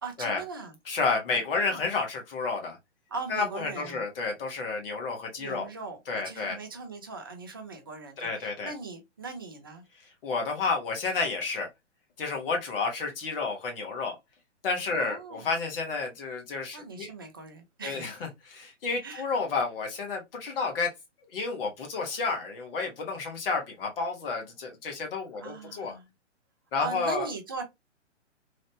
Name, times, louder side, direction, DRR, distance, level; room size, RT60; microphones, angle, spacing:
voice 1, 0.0-0.8 1.3-1.9 3.1-4.0 5.4-9.8 14.9-15.5 16.7-18.3 19.0-19.2 25.4-26.1 26.8-27.6, right 4 dB, 20° right, 0.3 m, -40 dB
voice 2, 0.9-2.8 3.3-5.7 6.1-6.6 8.2-8.7 10.2-11.7 12.2-14.1 14.6-17.1 17.8-20.9 21.3-26.0 26.7-27.3, left 4 dB, 50° left, 1.3 m, -31 dB
3.2 x 2.5 x 2.8 m
figure-of-eight pair, 125°, 36 cm